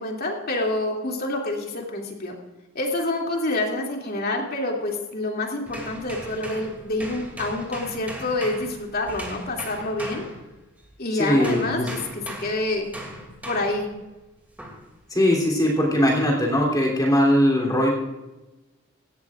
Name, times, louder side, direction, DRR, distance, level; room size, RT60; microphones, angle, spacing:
voice 1, 0.0-2.4 2.7-10.2 11.0-11.8 12.1-12.9 13.5-13.9, left 2 dB, 50° left, 0 dB, 2.7 m, -27 dB
sound 1, 5.7-10.9 11.4-13.9 14.6-14.9, right 1 dB, 10° right, 2.5 m, -38 dB
voice 2, 11.2-11.9 15.1-17.9, equal, 20° left, -1 dB, 3.2 m, -20 dB
17.5 x 14.0 x 2.5 m, 1.1 s
head